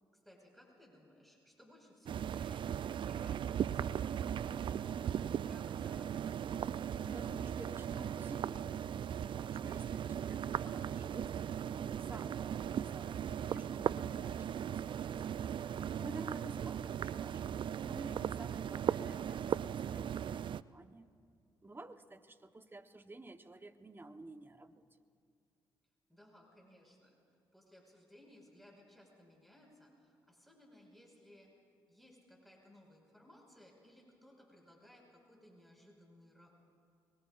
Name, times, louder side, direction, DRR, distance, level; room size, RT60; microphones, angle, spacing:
voice 1, 0.2-6.3 26.1-27.1 27.5-31.5 31.9-36.6, left 1 dB, ahead, -1 dB, 5.0 m, -61 dB
sound 1, 2.1-20.6, right 9 dB, 50° right, 0.4 m, -38 dB
voice 2, 6.8-9.0 9.4-15.1 15.9-21.1 21.6-24.8, right 2 dB, 20° right, 9 dB, 1.1 m, -51 dB
25.0 x 22.0 x 2.5 m, 2.3 s
hypercardioid pair, 45°, 11 cm